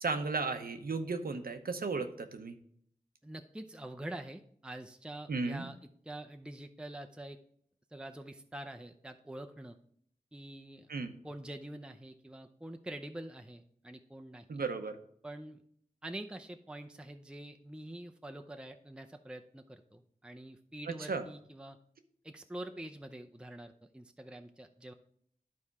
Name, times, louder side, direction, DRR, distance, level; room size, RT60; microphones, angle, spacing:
voice 1, 0.0-2.6 5.3-5.7 10.9-11.1 14.5-15.0 21.1-21.2, right 4 dB, 80° right, 7 dB, 0.9 m, -35 dB
voice 2, 3.2-5.8 6.0-7.4 7.9-9.8 10.3-10.9 11.2-14.5 15.2-15.6 16.0-21.8 22.2-24.9, right 1 dB, 5° right, 5 dB, 0.6 m, -46 dB
11.0 x 4.3 x 4.8 m, 0.65 s
cardioid pair, 45°, 15 cm